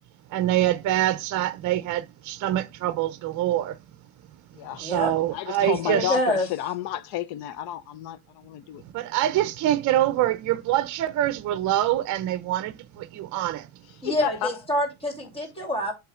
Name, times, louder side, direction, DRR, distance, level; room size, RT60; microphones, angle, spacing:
voice 1, 0.3-3.8 4.8-6.2 8.8-13.7, right 13 dB, 50° right, 0.7 m, -25 dB
voice 2, 4.8-5.1 5.6-6.5 14.0-15.9, left 1 dB, 15° left, 2.8 m, -27 dB
voice 3, 5.3-8.8 14.0-14.5 15.6-15.7, left 12 dB, 80° left, 1.0 m, -31 dB
8.3 x 3.2 x 4.9 m
cardioid pair, 140°, 37 cm